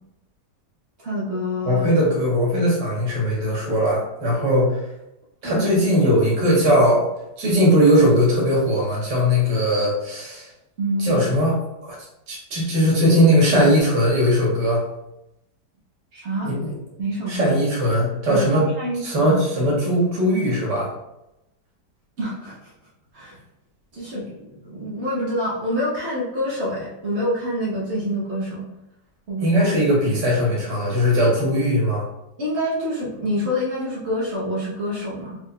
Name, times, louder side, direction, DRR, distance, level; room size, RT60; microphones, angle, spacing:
voice 1, 1.0-1.9 5.4-5.7 10.8-11.2 16.1-16.5 17.0-17.6 18.3-19.3 22.2-22.7 23.1-23.4 23.9-28.7 29.3-29.7 32.4-35.4, equal, 45° right, -6 dB, 1.2 m, -27 dB
voice 2, 1.6-4.8 5.4-7.1 7.4-10.5 11.0-11.5 11.8-12.0 12.3-14.8 16.4-16.7 17.3-18.6 19.0-20.9 29.4-32.0, equal, 90° right, -4 dB, 1.9 m, -19 dB
4.4 x 3.2 x 2.2 m, 0.89 s
omnidirectional pair, 1.8 m